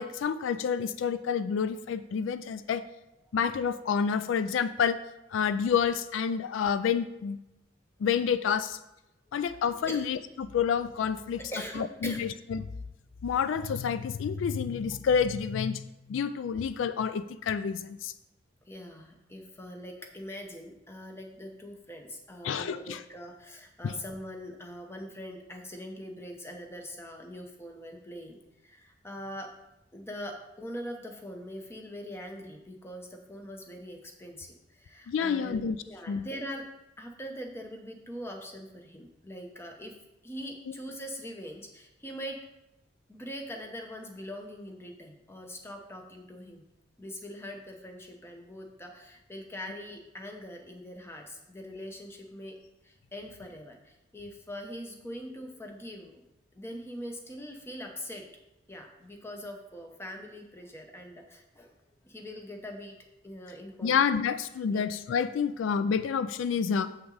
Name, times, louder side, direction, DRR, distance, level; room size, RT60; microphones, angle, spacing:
voice 1, 0.0-2.8 3.3-5.0 5.3-7.4 8.0-8.8 9.3-11.4 11.8-12.6 13.2-15.8 16.1-18.1 22.4-23.0 23.8-23.9 35.1-35.8 36.1-36.3 63.8-66.9, left 7 dB, 80° left, 13 dB, 0.3 m, -28 dB
voice 2, 11.4-12.2 18.7-29.5 29.9-35.6 35.8-36.7 37.0-39.9 40.2-42.4 43.1-46.7 47.0-52.6 52.8-56.2 56.5-58.3 58.7-61.7 62.0-63.0 63.2-64.0 64.7-64.8, equal, 15° left, 3 dB, 0.8 m, -42 dB
7.4 x 6.0 x 3.9 m, 0.92 s
head